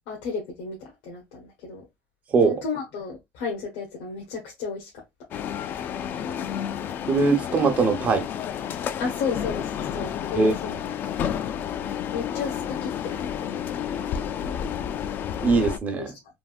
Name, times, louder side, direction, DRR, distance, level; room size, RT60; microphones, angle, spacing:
voice 1, 0.1-1.8 2.4-4.9 9.0-10.9 12.1-13.5 15.9-16.1, left 5 dB, 90° left, 1.1 m, -33 dB
sound 1, 5.3-15.8, left 9 dB, 45° left, 0.3 m, -30 dB
voice 2, 7.1-8.3 10.3-10.5 15.4-16.1, right 4 dB, 35° right, 0.8 m, -21 dB
3.5 x 2.3 x 2.4 m
cardioid pair, 130°, 5 cm